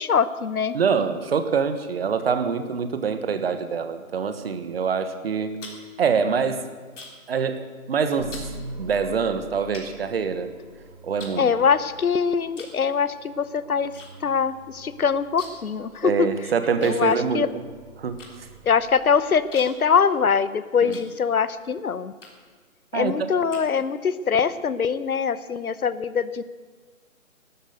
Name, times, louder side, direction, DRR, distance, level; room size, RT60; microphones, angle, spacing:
voice 1, 0.0-0.8 11.4-13.9 14.2-16.3 16.8-17.5 18.6-22.1 22.9-26.4, left 6 dB, 85° left, 15 dB, 1.0 m, -23 dB
voice 2, 0.7-5.5 6.0-6.6 7.3-8.4 8.8-10.5 11.0-11.5 16.0-17.4 18.0-18.2 20.8-21.0 22.9-23.3, right 6 dB, 45° right, 10 dB, 1.4 m, -25 dB
sound 1, 5.6-7.4 7.6-7.9 8.3-8.5 9.2-9.3 9.7-10.7 11.2-12.1 12.5-12.8 13.1-14.1 14.4-14.5 14.7-15.8 16.0-16.1 16.8-21.6 22.2-22.6 23.1-24.1, left 3 dB, 55° left, 3.5 m, -45 dB
sound 2, 8.2-20.3, right 2 dB, 30° right, 1.7 m, -45 dB
13.0 x 13.0 x 8.0 m, 1.4 s
hypercardioid pair, 155°, 42 cm